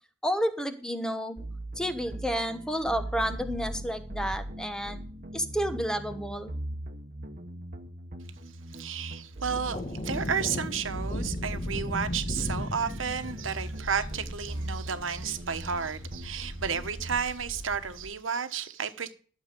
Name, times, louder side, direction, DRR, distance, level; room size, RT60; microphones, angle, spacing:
voice 1, 0.2-1.4 1.8-5.0 5.3-6.5, equal, 5° left, 1.1 m, -30 dB
sound 1, 1.4-17.3, right 1 dB, 45° right, 1.2 m, -40 dB
voice 2, 8.7-19.1, right 6 dB, 85° right, 1.2 m, -32 dB
sound 2, 9.5-15.1, left 1 dB, 35° left, 1.3 m, -36 dB
sound 3, 13.0-18.1, equal, 65° left, 3.1 m, -44 dB
12.0 x 6.7 x 5.2 m
head